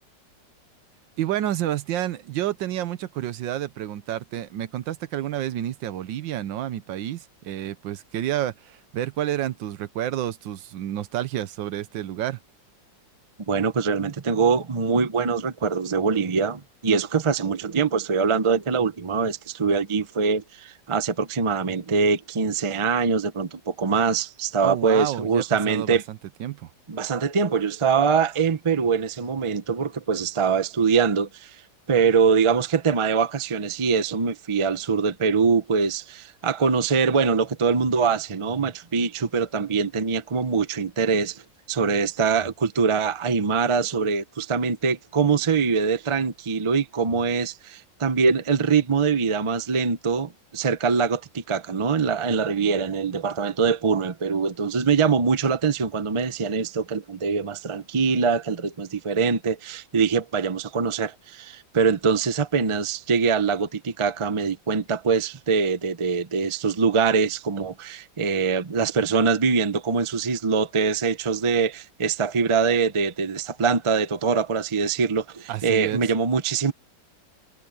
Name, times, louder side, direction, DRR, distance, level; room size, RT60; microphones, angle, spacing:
voice 1, 1.2-12.4 24.6-26.7 75.5-76.0, right 12 dB, 80° right, 1.5 m, -29 dB
voice 2, 13.5-26.0 26.9-31.5 31.9-41.4 41.7-76.7, right 5 dB, 45° right, 0.4 m, -23 dB
omnidirectional pair, 2.0 m